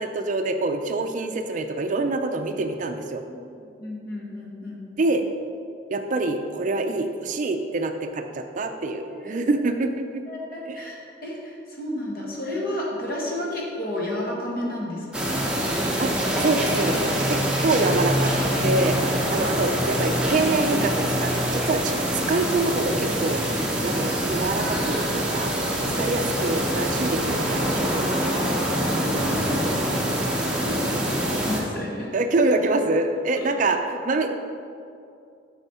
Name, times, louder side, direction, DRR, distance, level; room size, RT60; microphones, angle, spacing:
voice 1, 0.0-3.2 5.0-5.2 5.9-10.2 10.7-10.8 16.0-16.1 16.4-18.3 18.6-19.0 19.3-23.4 23.8-25.5 26.0-28.4 32.1-34.3, right 2 dB, 45° right, 6 dB, 0.4 m, -25 dB
voice 2, 3.3-4.8 9.1-9.6 10.3-15.4 19.3-19.5 22.1-22.3 28.8-32.1 33.4-33.5, left 1 dB, 50° left, -3 dB, 1.5 m, -33 dB
sound 1, 15.1-31.6, equal, 5° right, 0.9 m, -25 dB
7.1 x 6.2 x 4.2 m, 2.5 s
head